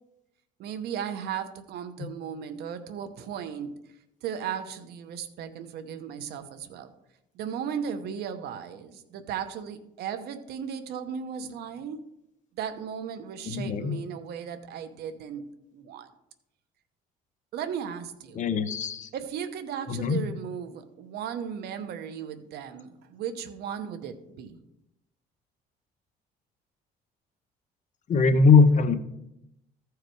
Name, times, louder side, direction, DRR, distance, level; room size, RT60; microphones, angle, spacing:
voice 1, 0.6-3.8 4.2-6.9 7.3-12.1 12.6-15.5 15.7-16.1 17.5-18.4 19.1-24.6, right 8 dB, 75° right, 9 dB, 0.9 m, -36 dB
voice 2, 13.4-14.0 18.3-19.1 19.9-20.2 28.1-29.0, left 4 dB, 45° left, 9 dB, 0.9 m, -21 dB
14.0 x 4.8 x 4.7 m, 0.83 s
cardioid pair, 110°, 17 cm